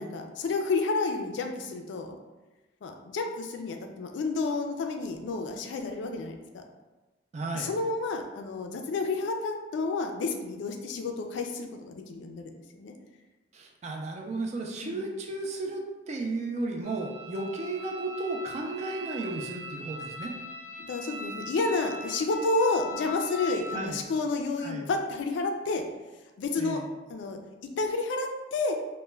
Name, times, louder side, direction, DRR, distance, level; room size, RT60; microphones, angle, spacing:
voice 1, 0.0-2.2 2.8-6.6 7.5-12.9 14.8-15.0 20.8-25.8 26.4-26.8 27.1-27.4 27.8-28.8, left 3 dB, 70° left, 3 dB, 0.3 m, -30 dB
voice 2, 7.3-7.7 13.5-20.3 23.7-24.0 24.6-24.9 26.6-26.8, right 2 dB, 35° right, 1 dB, 0.3 m, -34 dB
sound 1, 16.8-23.9, left 1 dB, 5° right, 0.7 m, -40 dB
2.2 x 2.1 x 3.1 m, 1.1 s
head